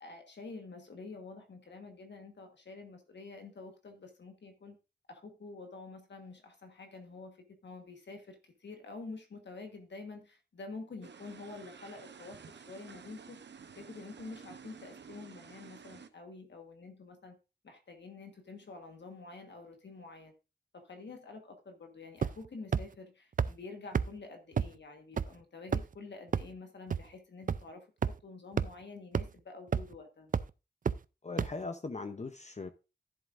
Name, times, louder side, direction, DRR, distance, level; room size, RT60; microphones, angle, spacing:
voice 1, 0.0-4.7 5.1-13.4 13.8-17.4 17.6-20.3 20.7-27.9 28.2-30.3, left 3 dB, 85° left, 5 dB, 1.3 m, -48 dB
sound 1, 11.0-16.1, right 6 dB, 85° right, 0.7 m, -52 dB
sound 2, 22.2-22.5 22.7-22.8 23.4-23.5 23.9-24.0 24.6-24.7 25.2-25.3 25.7-25.9 26.3-26.4 26.9-27.0 27.5-27.6 28.0-28.1 28.6-28.7 29.1-29.2 29.7-29.9 30.3-30.4 30.9-31.0 31.4-31.5, right 6 dB, 50° right, 0.4 m, -28 dB
voice 2, 31.2-32.7, left 3 dB, 40° left, 9 dB, 0.7 m, -39 dB
10.5 x 10.5 x 2.5 m, 0.29 s
cardioid pair, 55°, 18 cm